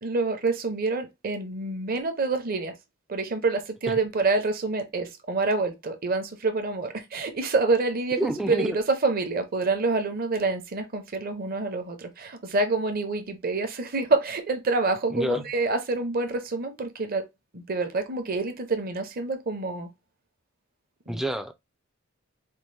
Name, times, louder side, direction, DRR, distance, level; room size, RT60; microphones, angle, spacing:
voice 1, 0.0-2.7 3.1-17.3 17.5-19.9 21.1-21.2, right 3 dB, 45° right, 0.8 m, -27 dB
voice 2, 8.2-8.8 15.1-15.5 21.1-21.5, right 1 dB, ahead, 0.3 m, -28 dB
4.4 x 2.5 x 3.3 m
head